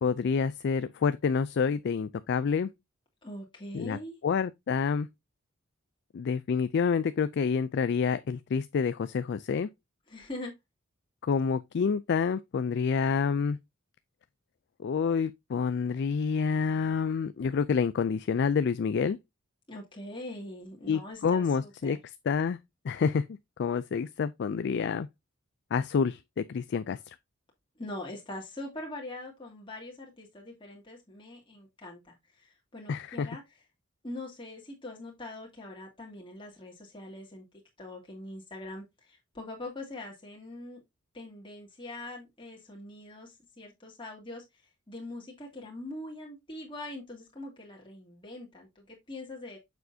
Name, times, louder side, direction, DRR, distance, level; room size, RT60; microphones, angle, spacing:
voice 1, 0.0-2.7 3.7-5.1 6.1-9.7 11.2-13.6 14.8-19.2 20.9-22.0 22.3-22.6 22.8-23.2 23.6-25.1 25.7-27.2 32.9-33.3, left 6 dB, 55° left, 0.3 m, -28 dB
voice 2, 3.2-4.2 10.1-10.5 19.7-22.0 27.8-33.4 34.0-37.5 37.8-40.8 41.1-44.4 44.9-49.6, left 1 dB, 25° left, 2.2 m, -43 dB
6.8 x 6.4 x 2.7 m
head